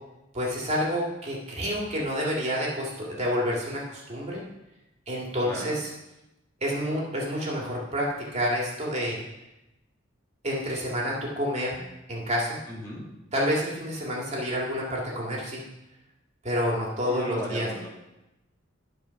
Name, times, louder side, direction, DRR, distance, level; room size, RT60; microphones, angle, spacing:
voice 1, 0.3-4.4 5.1-5.9 6.6-9.2 10.4-11.8 12.1-12.6 13.3-15.6 16.4-17.7, equal, 35° right, -3 dB, 2.3 m, -28 dB
voice 2, 5.4-5.8 12.7-13.0 17.0-17.9, equal, 15° left, -5 dB, 2.1 m, -36 dB
12.5 x 4.8 x 5.8 m, 0.95 s
head